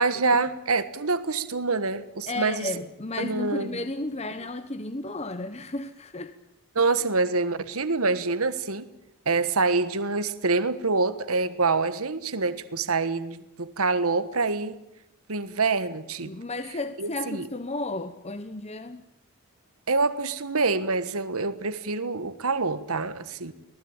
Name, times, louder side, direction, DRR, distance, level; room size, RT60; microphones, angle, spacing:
voice 1, 0.0-2.7 3.2-3.7 6.7-8.9 9.2-14.8 15.3-16.3 17.0-17.5 19.9-23.5, right 3 dB, 75° right, 1.5 m, -26 dB
voice 2, 2.3-6.3 16.3-19.0, left 2 dB, 30° left, 1.0 m, -33 dB
25.5 x 19.0 x 8.9 m
head